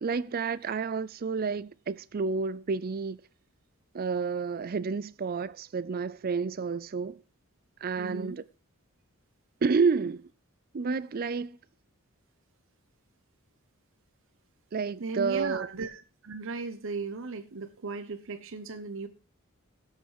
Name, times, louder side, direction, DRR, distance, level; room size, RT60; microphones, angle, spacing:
voice 1, 0.0-3.2 3.9-7.2 7.8-8.4 9.6-10.2 10.7-11.6 14.7-15.7, right 5 dB, 45° right, 0.4 m, -30 dB
voice 2, 8.0-8.4 15.0-19.1, right 3 dB, 65° right, 0.8 m, -37 dB
16.5 x 6.0 x 4.7 m
head